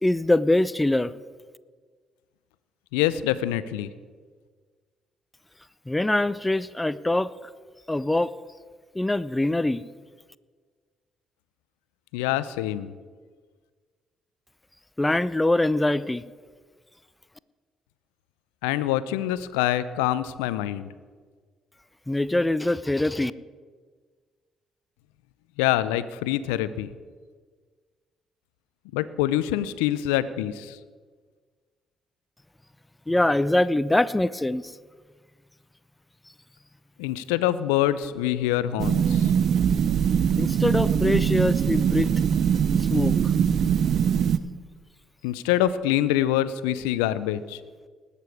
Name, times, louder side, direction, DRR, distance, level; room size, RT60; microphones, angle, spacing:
voice 1, 0.0-1.1 5.9-7.3 7.9-8.3 9.0-9.8 15.0-16.2 22.1-23.3 33.1-34.6 40.4-42.1 42.9-43.2, left 1 dB, 15° left, 17 dB, 0.5 m, -23 dB
voice 2, 2.9-3.9 12.1-12.9 18.6-20.9 25.6-26.9 28.9-30.8 37.0-39.3 45.2-47.6, left 13 dB, 80° left, 16 dB, 0.4 m, -25 dB
sound 1, 38.8-44.4, right 8 dB, 60° right, 0.5 m, -22 dB
20.0 x 6.8 x 4.8 m, 1.5 s
hypercardioid pair, 45°, 0 cm